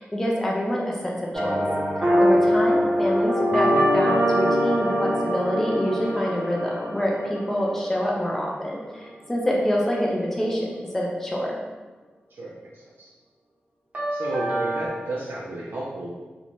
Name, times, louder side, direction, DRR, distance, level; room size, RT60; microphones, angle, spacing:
voice 1, 0.0-1.6 2.2-3.7 3.9-11.6, equal, 10° left, -3 dB, 0.3 m, -26 dB
sound 1, 1.3-8.6 13.9-14.9, equal, 35° right, 0.7 m, -23 dB
voice 2, 12.3-13.1 14.1-16.1, right 2 dB, 70° right, -5 dB, 0.4 m, -33 dB
2.5 x 2.1 x 3.0 m, 1.3 s
wide cardioid pair, 170°, 4 cm